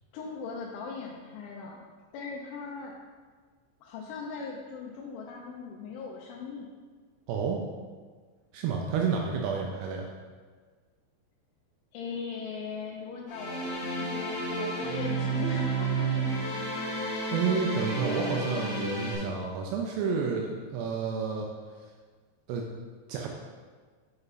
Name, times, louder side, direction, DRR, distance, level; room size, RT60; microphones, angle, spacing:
voice 1, 0.1-1.8 2.1-3.0 3.8-6.7 11.9-16.3, left 4 dB, 85° left, -2 dB, 3.0 m, -39 dB
voice 2, 7.3-7.6 8.5-10.1 17.3-21.5 22.5-22.7 23.1-23.3, right 5 dB, 85° right, 0 dB, 2.4 m, -30 dB
sound 1, 13.3-19.1, right 2 dB, 45° left, 2.2 m, -31 dB
7.1 x 5.5 x 4.0 m, 1.5 s
omnidirectional pair, 5.5 m